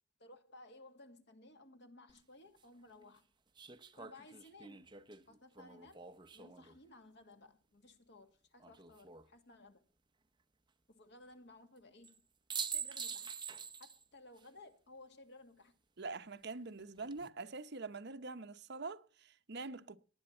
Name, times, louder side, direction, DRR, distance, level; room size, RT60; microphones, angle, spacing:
voice 1, 0.2-3.3 3.9-5.0 5.3-9.8 10.9-12.2 12.7-13.4 13.8-15.8, left 2 dB, 55° left, 2.0 m, -58 dB
sound 1, 2.1-2.2 3.6-6.8 8.6-9.3 12.0-12.2 12.5-14.0 14.4-14.5 16.8-17.3, right 6 dB, 25° right, 0.8 m, -45 dB
voice 2, 16.0-20.0, right 3 dB, 55° right, 0.9 m, -45 dB
18.5 x 9.7 x 4.4 m
head